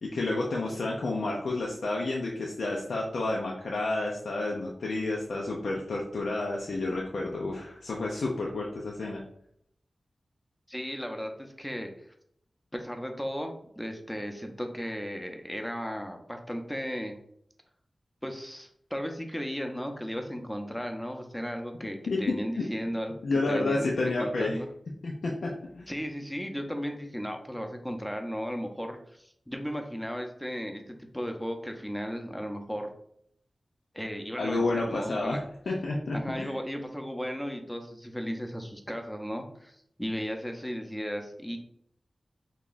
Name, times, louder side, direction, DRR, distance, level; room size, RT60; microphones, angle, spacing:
voice 1, 0.0-9.2 22.1-22.3 23.2-24.6 25.0-25.9 34.4-35.4 35.7-36.5, left 2 dB, 85° left, -2 dB, 0.4 m, -30 dB
voice 2, 10.7-11.9 12.7-17.2 18.2-24.7 25.9-32.9 33.9-35.4 36.1-41.6, equal, 5° left, 4 dB, 0.6 m, -35 dB
2.9 x 2.3 x 3.9 m, 0.69 s
cardioid pair, 45°, 0 cm